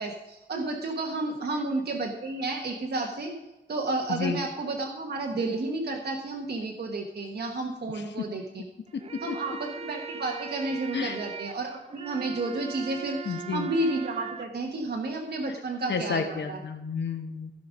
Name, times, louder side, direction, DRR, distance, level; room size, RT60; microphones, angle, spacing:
voice 1, 0.0-3.3 3.7-8.4 9.2-16.6, right 2 dB, 60° right, 1 dB, 1.3 m, -31 dB
voice 2, 4.1-4.4 7.9-8.3 8.9-9.4 10.9-11.2 13.2-13.7 15.9-17.5, left 5 dB, 75° left, 6 dB, 1.2 m, -31 dB
sound 1, 8.9-14.5, right 6 dB, 35° right, 0.4 m, -40 dB
15.5 x 5.2 x 5.1 m, 1.0 s
wide cardioid pair, 120°, 18 cm